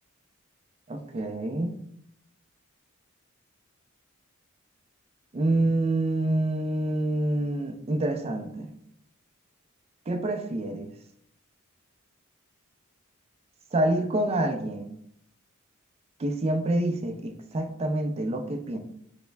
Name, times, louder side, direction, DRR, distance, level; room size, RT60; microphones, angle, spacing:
voice 1, 0.9-1.8 5.3-8.7 10.1-10.9 13.7-14.9 16.2-18.8, right 1 dB, 30° right, 6 dB, 0.3 m, -27 dB
5.6 x 2.0 x 2.2 m, 0.72 s
head